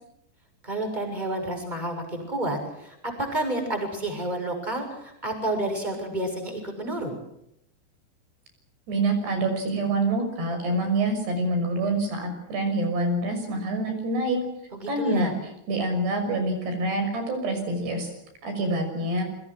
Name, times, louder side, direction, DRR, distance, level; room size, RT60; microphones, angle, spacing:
voice 1, 0.6-7.2 14.7-15.3, right 1 dB, 10° right, 4 dB, 6.6 m, -30 dB
voice 2, 8.9-14.4 14.9-15.3 15.7-18.1 18.4-19.2, right 2 dB, 65° right, 6 dB, 8.2 m, -26 dB
28.0 x 24.0 x 6.3 m, 0.80 s
omnidirectional pair, 5.1 m